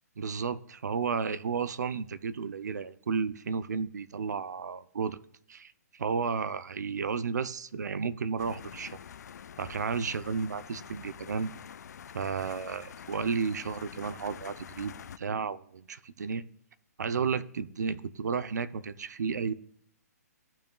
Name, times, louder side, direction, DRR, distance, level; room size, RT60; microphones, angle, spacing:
voice 1, 0.2-5.2 5.5-9.0 9.6-11.5 12.1-16.4 17.0-19.5, right 5 dB, 90° right, 0.6 m, -33 dB
sound 1, 8.4-15.2, left 8 dB, 80° left, 0.4 m, -46 dB
15.0 x 5.5 x 2.3 m
hypercardioid pair, 160°, 9 cm